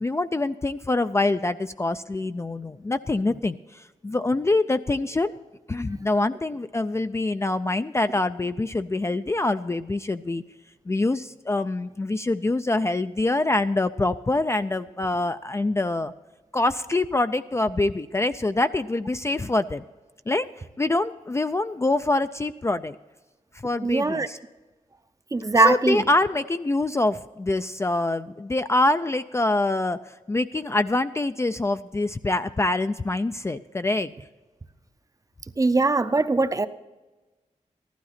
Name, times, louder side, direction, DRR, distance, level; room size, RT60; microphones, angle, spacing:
voice 1, 0.0-5.3 5.7-10.4 10.9-16.1 16.5-19.8 20.3-20.5 20.8-23.0 23.5-24.4 25.5-34.1, left 2 dB, 20° left, 10 dB, 0.3 m, -25 dB
voice 2, 23.8-24.3 25.3-26.0 35.6-36.7, right 3 dB, 25° right, 11 dB, 0.6 m, -21 dB
15.0 x 12.5 x 4.2 m, 1.2 s
wide cardioid pair, 120°, 13 cm